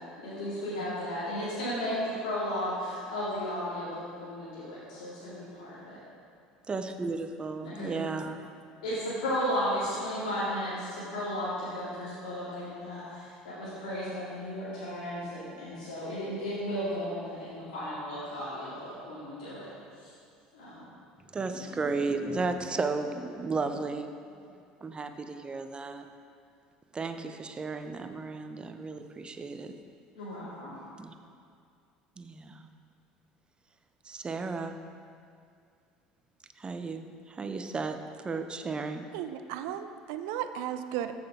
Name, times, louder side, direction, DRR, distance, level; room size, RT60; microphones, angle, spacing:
voice 1, 0.0-2.0 2.2-6.0 7.6-8.0 8.8-19.7 20.0-20.1 20.5-20.9 21.5-21.6 30.2-30.8, equal, 75° left, -10 dB, 2.4 m, -34 dB
voice 2, 6.7-8.5 21.3-24.1 24.8-26.1 26.9-29.7 31.0-31.1 32.2-32.7 34.0-34.8 36.6-39.1, right 3 dB, 25° right, 8 dB, 0.8 m, -34 dB
voice 3, 39.1-41.1, right 10 dB, 65° right, 10 dB, 0.5 m, -35 dB
14.5 x 6.1 x 3.6 m, 2.4 s
hypercardioid pair, 65°, 4 cm